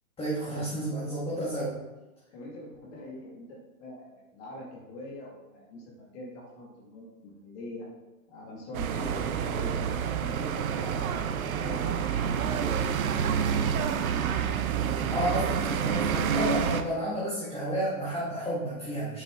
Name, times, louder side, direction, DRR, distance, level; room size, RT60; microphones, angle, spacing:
voice 1, 0.2-1.8 15.1-19.2, equal, 15° left, -7 dB, 2.1 m, -31 dB
voice 2, 2.3-7.9 8.3-9.8 10.2-12.8 13.2-14.3, left 1 dB, 45° left, -2 dB, 2.3 m, -43 dB
sound 1, 8.7-16.8, right 7 dB, 70° right, 1.0 m, -28 dB
8.8 x 6.4 x 3.8 m, 1.1 s
hypercardioid pair, 135°, 43 cm